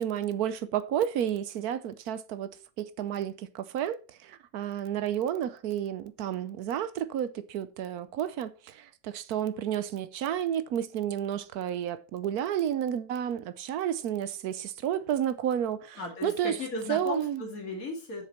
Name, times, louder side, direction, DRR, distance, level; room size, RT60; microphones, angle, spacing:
voice 1, 0.0-2.5 2.8-16.5 16.9-17.4, right 10 dB, 85° right, 1.2 m, -31 dB
voice 2, 16.0-18.2, left 3 dB, 70° left, 2.7 m, -36 dB
7.9 x 6.7 x 4.4 m
omnidirectional pair, 1.6 m